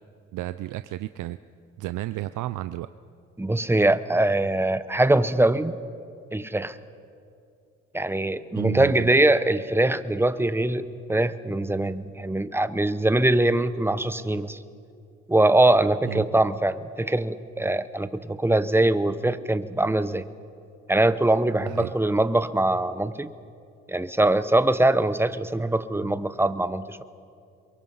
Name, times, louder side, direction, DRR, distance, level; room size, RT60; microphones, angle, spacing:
voice 1, 0.3-1.4 1.8-2.9 8.6-9.2 16.0-16.4 21.7-21.9, right 16 dB, 80° right, 13 dB, 0.6 m, -32 dB
voice 2, 3.4-5.7 6.3-6.8 7.9-14.6 15.3-20.2 20.9-23.3 23.9-27.0, right 1 dB, 10° right, 13 dB, 0.9 m, -22 dB
27.5 x 23.0 x 5.6 m, 2.4 s
cardioid pair, 90°, 30 cm